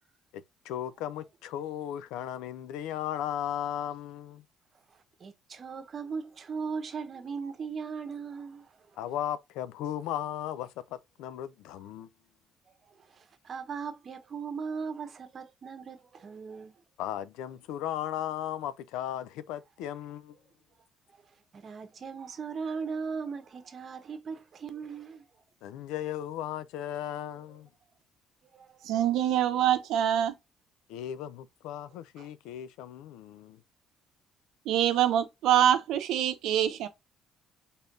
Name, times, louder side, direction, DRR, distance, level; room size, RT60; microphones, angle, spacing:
voice 1, 0.3-4.4 9.0-12.1 17.0-20.4 25.6-27.7 30.9-33.6, left 11 dB, 85° left, 0.4 m, -36 dB
voice 2, 5.2-8.7 13.1-16.7 21.1-21.2 21.5-25.2 28.5-28.8, right 5 dB, 45° right, 1.0 m, -38 dB
voice 3, 28.8-30.3 34.7-36.9, right 10 dB, 75° right, 0.7 m, -25 dB
4.3 x 3.4 x 2.5 m
supercardioid pair, 80°, 0 cm